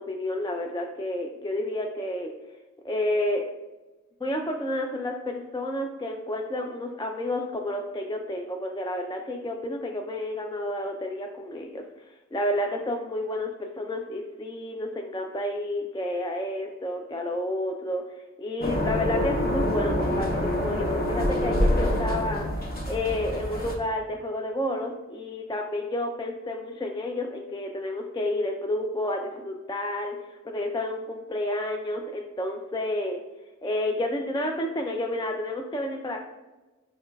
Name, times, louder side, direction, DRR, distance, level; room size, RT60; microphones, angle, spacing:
voice 1, 0.0-2.3 2.8-3.4 4.2-22.5 22.8-33.2 33.6-36.2, left 1 dB, 15° left, 2 dB, 0.4 m, -30 dB
sound 1, 18.6-23.7, left 1 dB, 30° left, 0.9 m, -26 dB
6.4 x 3.2 x 2.3 m, 1.2 s
wide cardioid pair, 70°, 29 cm